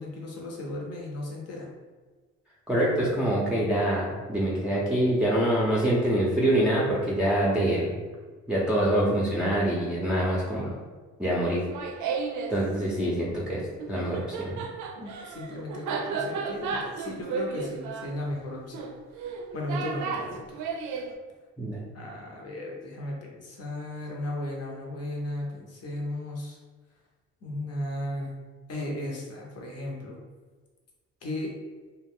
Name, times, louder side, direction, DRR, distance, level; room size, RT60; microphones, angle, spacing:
voice 1, 0.0-1.7 15.0-18.8 19.2-20.7 21.9-26.6 27.4-28.3 28.7-30.2 31.2-31.5, left 1 dB, 55° left, -1 dB, 0.9 m, -35 dB
voice 2, 2.7-8.0 8.5-10.7 11.2-11.6 12.5-14.6 21.6-21.8, right 1 dB, 5° right, -7 dB, 0.6 m, -25 dB
Laughter, 11.5-12.6 13.8-21.1, right 5 dB, 75° right, 0.4 m, -33 dB
2.4 x 2.3 x 3.5 m, 1.3 s
cardioid pair, 90°, 30 cm